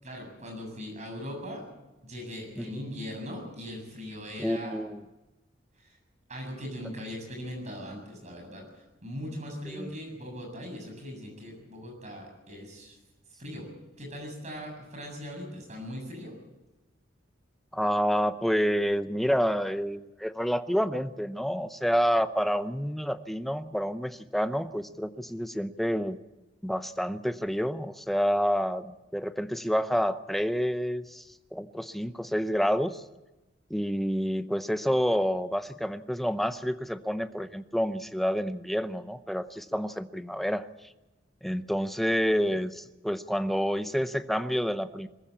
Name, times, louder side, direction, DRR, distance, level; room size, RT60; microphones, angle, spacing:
voice 1, 0.0-1.6 2.0-4.8 5.8-6.0 6.3-8.6 9.0-13.0 13.4-13.7 14.0-16.3, equal, 40° right, 2 dB, 7.5 m, -40 dB
voice 2, 4.4-5.0 9.7-9.9 17.7-26.2 26.6-31.3 31.5-33.0 33.7-40.7 41.4-45.1, equal, ahead, 11 dB, 0.7 m, -28 dB
22.0 x 15.0 x 8.6 m, 1.1 s
head